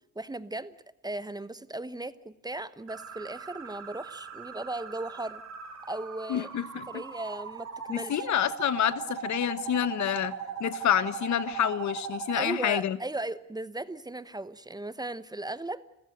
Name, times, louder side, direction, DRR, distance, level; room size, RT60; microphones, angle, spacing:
voice 1, 0.1-0.8 1.0-5.4 5.9-8.3 12.3-15.9, right 2 dB, 15° right, 15 dB, 1.0 m, -37 dB
sound 1, 2.9-12.5, right 7 dB, 60° right, 4.0 m, -39 dB
voice 2, 6.3-7.0 7.9-10.3 10.6-13.0, left 10 dB, 70° left, 15 dB, 1.2 m, -28 dB
29.5 x 15.5 x 7.9 m, 0.87 s
cardioid pair, 90°, 30 cm